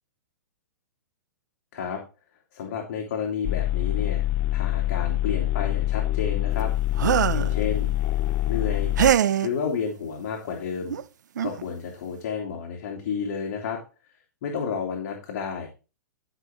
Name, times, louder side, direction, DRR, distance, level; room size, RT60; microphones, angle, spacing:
voice 1, 2.5-4.2 4.5-6.7 7.3-7.9 8.5-11.0 11.4-13.8 14.4-15.7, left 6 dB, 55° left, 0 dB, 2.9 m, -31 dB
sound 1, 3.4-9.1, left 14 dB, 30° left, 0.4 m, -25 dB
sound 2, 7.0-7.5 9.0-9.5 10.9-11.0 11.4-11.6, right 9 dB, 75° right, 0.7 m, -22 dB
14.0 x 5.9 x 3.7 m, 0.32 s
hypercardioid pair, 140°, 10 cm